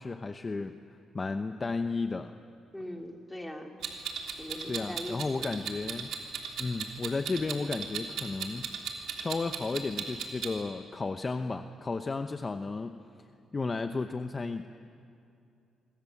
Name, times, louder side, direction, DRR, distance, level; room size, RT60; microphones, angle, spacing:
voice 1, 0.0-2.3 4.7-6.1 6.6-8.7 9.2-13.3 13.5-14.7, left 3 dB, 30° left, 8 dB, 0.9 m, -33 dB
voice 2, 2.7-5.5, left 1 dB, 5° left, 2 dB, 2.9 m, -42 dB
Clock, 3.8-10.5, right 7 dB, 75° right, 3.1 m, -36 dB
28.0 x 24.0 x 7.3 m, 2.5 s
cardioid pair, 90°, 0 cm